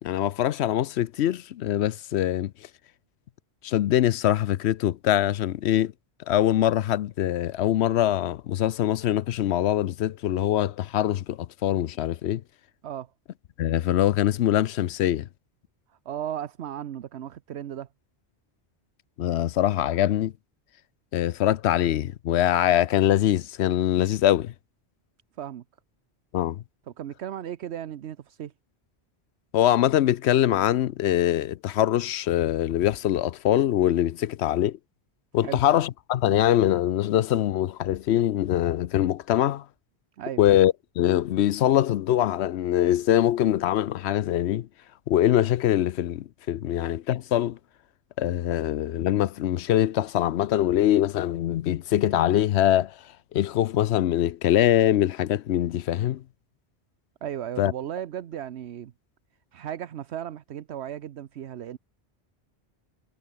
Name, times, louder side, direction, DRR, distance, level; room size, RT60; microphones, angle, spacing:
voice 1, 0.0-2.5 3.6-5.9 6.3-12.4 13.6-15.3 19.2-20.3 21.1-24.5 26.3-26.6 29.5-34.8 35.3-39.6 40.4-44.7 45.1-47.6 48.2-52.9 53.3-56.2 57.6-57.7, left 12 dB, 80° left, 0.9 m, -23 dB
voice 2, 15.9-17.9 25.4-25.6 26.9-28.5 35.4-35.6 40.2-40.4 57.2-58.9 59.5-61.8, right 10 dB, 80° right, 1.0 m, -35 dB
omnidirectional pair, 1.1 m